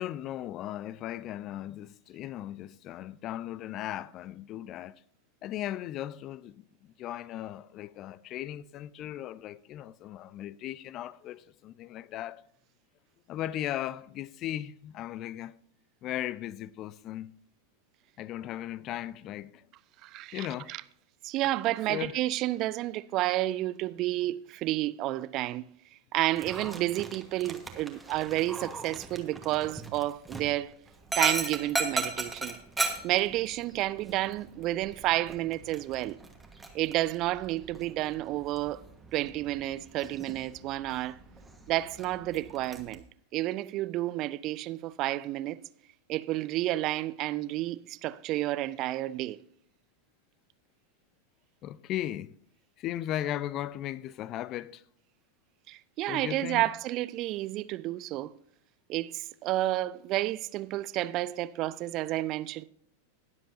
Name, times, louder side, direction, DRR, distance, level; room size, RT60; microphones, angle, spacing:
voice 1, 0.0-5.0 5.4-12.4 13.3-15.5 16.0-17.3 18.2-19.6 20.3-20.7 21.9-22.1 51.6-52.4 52.8-54.8 56.1-56.6, left 12 dB, 35° left, 0.4 m, -37 dB
voice 2, 20.0-20.8 21.2-25.7 26.1-30.7 31.2-32.6 33.0-36.2 36.7-38.8 39.1-41.2 41.7-43.0 43.3-45.6 46.1-49.4 55.7-58.3 58.9-62.6, right 16 dB, 40° right, 0.4 m, -30 dB
Dog, 26.3-42.9, right 3 dB, 5° right, 1.4 m, -38 dB
20.0 x 7.5 x 2.7 m
figure-of-eight pair, 90°, 0 cm